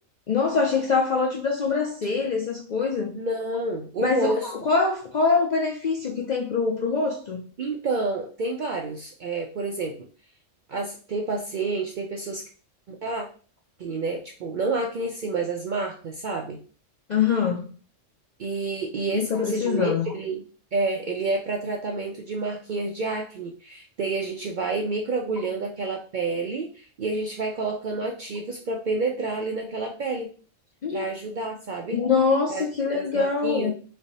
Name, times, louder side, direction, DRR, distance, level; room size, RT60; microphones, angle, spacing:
voice 1, 0.3-3.2 4.0-4.3 4.6-7.5 17.1-17.8 19.1-20.1 30.8-31.0 31.9-33.7, left 5 dB, 60° left, 0.4 m, -24 dB
voice 2, 3.1-4.5 7.6-9.9 10.7-12.4 12.9-13.3 13.8-16.6 18.4-20.4 20.7-30.3 30.9-32.0 32.5-32.6 32.9-33.7, right 3 dB, 60° right, 0.5 m, -29 dB
3.3 x 2.7 x 4.0 m
omnidirectional pair, 1.3 m